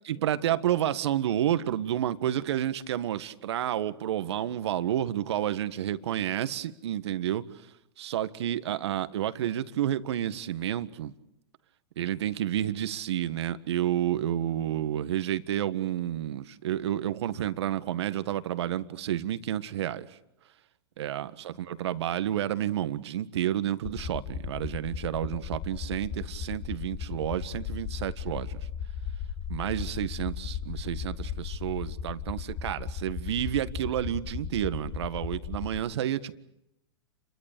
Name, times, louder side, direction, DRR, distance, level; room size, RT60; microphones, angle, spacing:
voice 1, 0.0-7.7 8.0-11.1 11.9-20.2 21.0-28.7 29.5-36.4, right 11 dB, 70° right, 11 dB, 1.7 m, -30 dB
sound 1, 23.8-35.8, left 7 dB, 40° left, 1.9 m, -36 dB
30.0 x 23.0 x 6.9 m, 0.83 s
hypercardioid pair, 110°, 15 cm